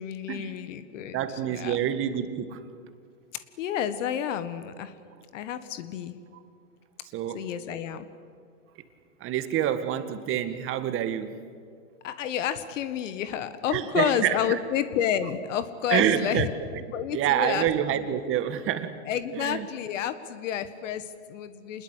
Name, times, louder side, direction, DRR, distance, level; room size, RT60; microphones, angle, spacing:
voice 1, 0.0-1.2 1.5-1.8 3.6-4.9 5.3-6.2 7.3-8.1 12.0-16.5 16.9-18.1 19.0-21.8, left 9 dB, 60° left, 12 dB, 1.7 m, -30 dB
voice 2, 1.1-2.7 7.1-7.5 9.2-11.4 13.7-14.6 15.9-16.5 16.7-16.8 17.1-19.0 19.3-19.7, right 10 dB, 30° right, 10 dB, 1.8 m, -27 dB
27.5 x 21.0 x 8.3 m, 2.2 s
hypercardioid pair, 125°, 41 cm